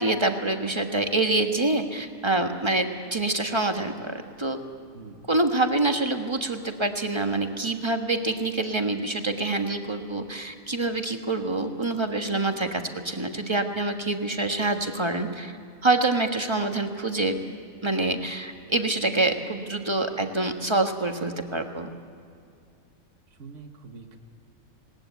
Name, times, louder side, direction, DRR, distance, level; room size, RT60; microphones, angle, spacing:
voice 1, 0.0-4.6 5.3-15.5 15.8-17.4 17.8-21.9, right 2 dB, 20° right, 5 dB, 1.4 m, -26 dB
voice 2, 4.9-5.3 23.4-24.2, right 4 dB, 60° right, 4 dB, 1.8 m, -44 dB
20.0 x 19.0 x 8.2 m, 2.4 s
omnidirectional pair, 1.5 m